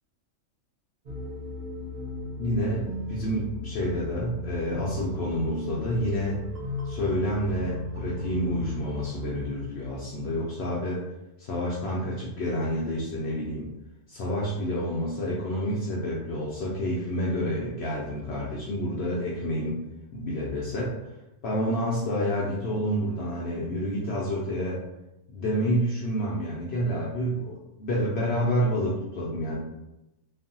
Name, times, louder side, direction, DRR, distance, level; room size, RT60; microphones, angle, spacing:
sound 1, 1.1-9.3, left 2 dB, 55° right, 0.8 m, -36 dB
voice 1, 2.4-6.4 6.8-11.0 11.4-13.7 14.1-19.8 20.1-20.9 21.4-24.8 25.3-29.6, equal, 65° left, -5 dB, 0.7 m, -29 dB
3.2 x 2.0 x 2.6 m, 0.91 s
omnidirectional pair, 1.3 m